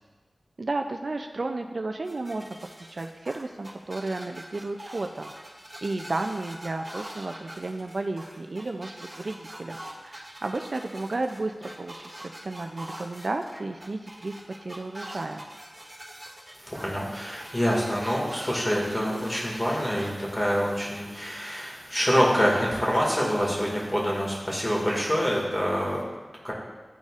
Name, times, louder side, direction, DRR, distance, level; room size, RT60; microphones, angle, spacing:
voice 1, 0.6-2.4 2.9-5.3 5.8-9.8 10.0-15.4, right 2 dB, 60° right, 5 dB, 0.3 m, -33 dB
sound 1, 2.0-20.1, right 1 dB, 20° right, 1.8 m, -43 dB
voice 2, 16.6-26.0 26.4-26.5, equal, 20° left, -4 dB, 1.9 m, -26 dB
11.5 x 4.0 x 2.4 m, 1.3 s
wide cardioid pair, 65°, 0 cm